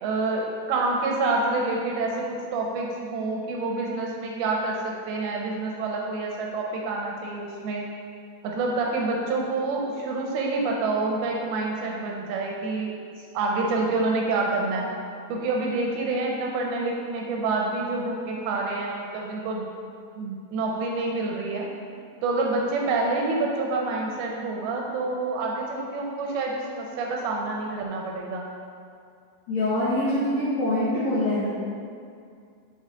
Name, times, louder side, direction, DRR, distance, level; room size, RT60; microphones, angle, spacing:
voice 1, 0.0-7.9 8.4-13.0 13.3-14.9 15.3-19.7 20.2-21.7 22.2-28.5, right 3 dB, 80° right, -1 dB, 2.3 m, -27 dB
voice 2, 29.5-31.5, left 1 dB, 75° left, -11 dB, 1.6 m, -24 dB
5.5 x 5.1 x 3.8 m, 2.3 s
omnidirectional pair, 4.8 m